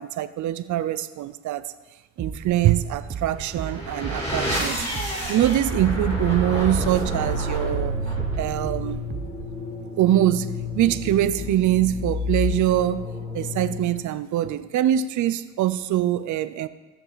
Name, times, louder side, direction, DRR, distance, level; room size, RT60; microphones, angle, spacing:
voice 1, 0.0-1.6 2.2-4.9 5.3-7.9 8.4-9.0 10.0-13.1 13.3-16.7, right 12 dB, 75° right, 13 dB, 0.6 m, -23 dB
sound 1, 2.2-9.6, right 6 dB, 35° right, 0.9 m, -35 dB
sound 2, 3.3-14.1, left 1 dB, 20° left, 4.4 m, -29 dB
15.5 x 7.0 x 4.1 m, 1.2 s
cardioid pair, 90°, 30 cm